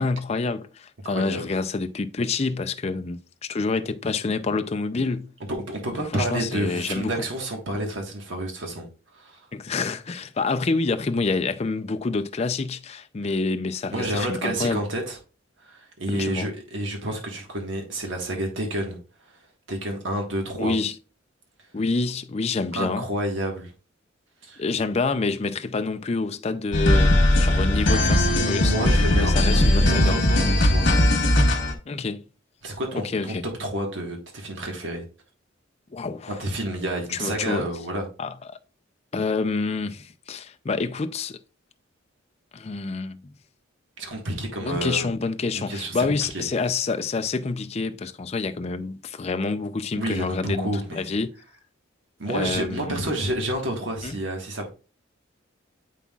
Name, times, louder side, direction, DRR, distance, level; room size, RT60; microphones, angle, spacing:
voice 1, 0.0-3.2 3.5-5.3 6.1-7.1 9.5-14.8 16.1-16.5 20.6-21.0 21.7-23.0 24.6-27.1 27.4-28.7 29.2-30.2 31.9-32.2 32.9-33.4 35.9-36.4 37.1-37.7 38.2-38.3 39.1-41.4 42.5-43.3 44.6-51.3 52.3-53.1 54.0-54.1, left 3 dB, 30° left, 0.4 m, -27 dB
voice 2, 1.0-1.5 5.5-8.9 9.1-9.5 13.9-15.2 15.6-19.0 19.3-19.4 19.7-20.7 22.7-23.7 24.4-24.6 27.5-27.6 28.6-30.9 32.6-35.0 36.3-38.1 44.0-45.1 45.5-46.0 46.3-46.4 50.0-51.1 52.2-54.7, right 1 dB, 65° right, 1.4 m, -29 dB
sound 1, 26.7-31.7, left 1 dB, 60° left, 1.3 m, -19 dB
8.2 x 5.5 x 2.4 m
head